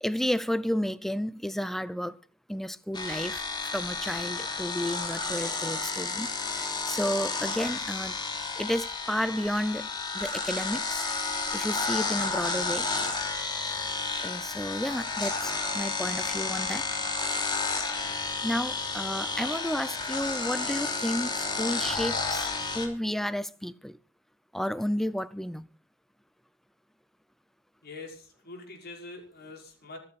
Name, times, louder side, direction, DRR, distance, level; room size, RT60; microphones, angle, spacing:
voice 1, 0.0-2.2 2.5-8.2 8.6-9.9 10.1-11.1 11.5-12.9 14.2-16.8 18.4-24.0 24.5-25.6, equal, ahead, 0.6 m, -32 dB
sound 1, 2.9-22.9, left 4 dB, 20° left, 3.4 m, -31 dB
voice 2, 27.8-30.0, left 3 dB, 50° left, 5.7 m, -44 dB
26.0 x 8.7 x 4.2 m
head